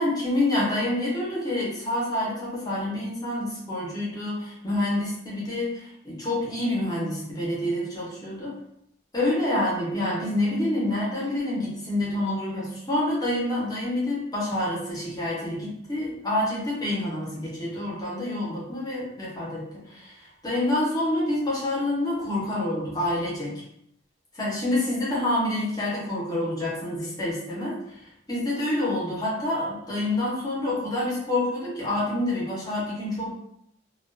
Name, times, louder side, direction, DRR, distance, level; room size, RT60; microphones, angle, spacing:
voice 1, 0.0-8.5 9.1-23.6 24.3-28.0 28.3-33.4, left 1 dB, 20° left, -6 dB, 0.7 m, -27 dB
2.3 x 2.3 x 2.4 m, 0.77 s
head